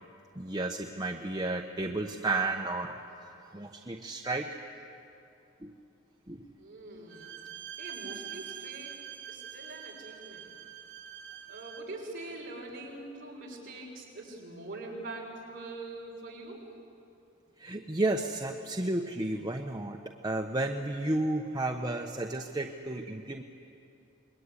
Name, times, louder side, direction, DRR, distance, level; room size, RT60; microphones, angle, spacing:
voice 1, 0.4-2.9 3.5-4.6 5.6-5.7 6.3-6.4 17.6-20.0 20.2-23.4, right 2 dB, 20° right, 2 dB, 1.0 m, -32 dB
voice 2, 6.6-7.4 7.8-8.9 9.3-10.5 11.5-16.7, right 2 dB, 45° right, -2 dB, 6.6 m, -43 dB
Bowed string instrument, 7.1-11.9, right 10 dB, 60° right, 3.4 m, -44 dB
26.5 x 22.5 x 9.8 m, 2.7 s
head